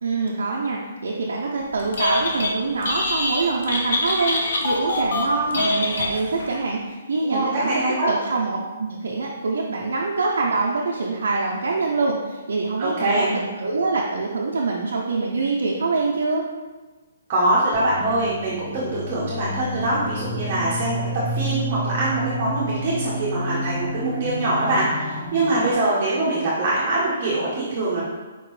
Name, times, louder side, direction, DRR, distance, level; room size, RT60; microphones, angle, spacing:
voice 1, 0.0-16.5, right 3 dB, 85° right, -3 dB, 0.5 m, -25 dB
Telephone, 1.8-2.5 2.8-6.5, left 2 dB, 70° left, 0.7 m, -24 dB
voice 2, 7.2-8.1 12.8-13.3 17.3-28.0, right 2 dB, 35° right, -8 dB, 0.9 m, -23 dB
sound 1, 17.7-25.7, equal, 5° left, 0.9 m, -30 dB
4.5 x 2.9 x 3.1 m, 1.2 s
hypercardioid pair, 160°, 0 cm